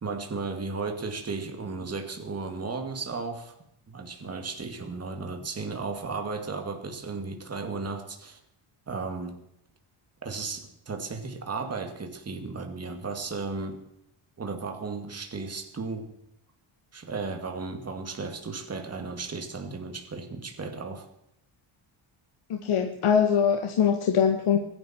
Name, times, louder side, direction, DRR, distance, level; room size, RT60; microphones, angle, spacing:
voice 1, 0.0-3.6 3.9-8.4 8.9-9.4 10.2-13.8 14.4-16.1 16.9-21.1, right 4 dB, 30° right, 4 dB, 2.3 m, -35 dB
voice 2, 22.5-24.6, left 7 dB, 90° left, 4 dB, 1.7 m, -23 dB
24.0 x 11.0 x 4.5 m, 0.80 s
wide cardioid pair, 150°, 49 cm